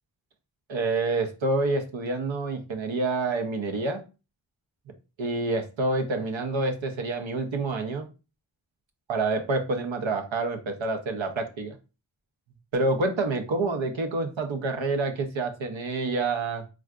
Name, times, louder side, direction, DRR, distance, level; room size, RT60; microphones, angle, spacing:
voice 1, 0.7-4.0 5.2-8.1 9.1-11.8 12.7-16.6, right 3 dB, 70° right, 6 dB, 0.7 m, -27 dB
3.4 x 2.3 x 2.4 m, 0.31 s
cardioid pair, 40°, 47 cm